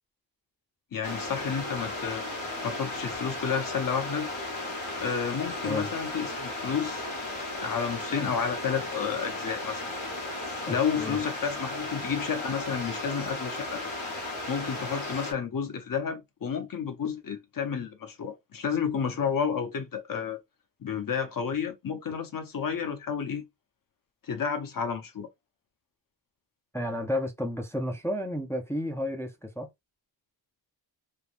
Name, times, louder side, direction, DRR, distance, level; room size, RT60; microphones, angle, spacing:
voice 1, 0.9-2.2 2.6-4.3 5.0-7.0 7.6-9.9 10.7-13.8 14.5-20.4 20.8-23.4 24.2-25.3, left 6 dB, 45° left, 0.7 m, -31 dB
sound 1, 1.0-15.3, left 2 dB, 85° left, 1.4 m, -35 dB
voice 2, 10.7-11.2 26.7-29.7, left 1 dB, 5° left, 0.4 m, -32 dB
3.3 x 2.1 x 2.4 m
wide cardioid pair, 160°, 46 cm